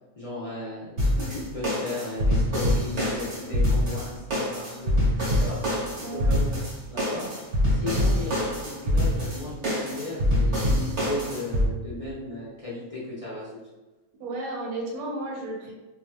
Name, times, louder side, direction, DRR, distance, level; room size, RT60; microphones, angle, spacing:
voice 1, 0.2-5.6 6.0-6.6 6.9-7.3 7.7-13.5, left 2 dB, 35° left, -10 dB, 0.5 m, -35 dB
sound 1, 1.0-11.7, left 1 dB, 50° right, 1.4 m, -25 dB
voice 2, 6.0-6.3 14.2-15.7, right 2 dB, 85° right, -2 dB, 1.2 m, -33 dB
2.8 x 2.7 x 2.2 m, 1.1 s
omnidirectional pair, 1.5 m